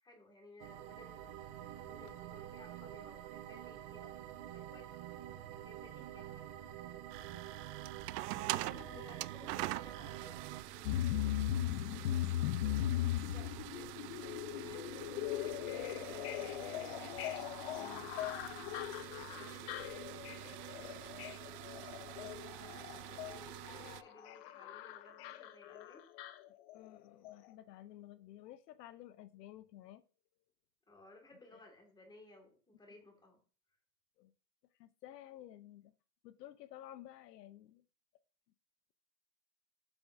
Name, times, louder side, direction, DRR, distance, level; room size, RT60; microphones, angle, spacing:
voice 1, 0.0-4.1 4.5-4.9 5.6-6.5 8.5-11.0 11.8-12.2 13.3-16.7 18.0-20.0 20.3-20.9 22.2-26.1 30.9-33.4, left 2 dB, 10° left, 2.0 m, -60 dB
sound 1, 0.6-10.6, right 11 dB, 25° right, 0.4 m, -48 dB
sound 2, 7.1-24.0, right 17 dB, 70° right, 0.6 m, -45 dB
voice 2, 8.4-9.0 17.8-18.1 26.7-30.0 31.5-31.6 34.2-34.3 34.8-35.9 36.2-37.8, left 13 dB, 75° left, 0.8 m, -54 dB
sound 3, 10.8-27.0 27.2-27.3, left 12 dB, 40° left, 0.5 m, -39 dB
12.0 x 7.1 x 2.7 m
supercardioid pair, 155°, 49 cm